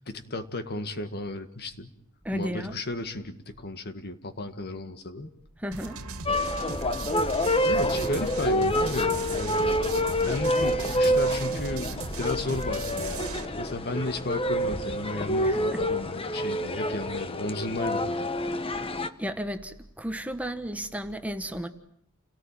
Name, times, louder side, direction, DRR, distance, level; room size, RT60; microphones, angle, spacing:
voice 1, 0.0-1.9 2.3-5.3 7.6-18.3, left 2 dB, 50° left, 9 dB, 1.8 m, -34 dB
voice 2, 2.2-2.8 5.6-6.0 15.4-15.8 19.2-21.7, equal, 5° right, 8 dB, 1.3 m, -33 dB
sound 1, 5.7-13.5, right 3 dB, 90° right, 2.2 m, -37 dB
sound 2, 6.3-19.1, equal, 25° left, 1.2 m, -27 dB
29.5 x 18.0 x 9.0 m, 0.70 s
head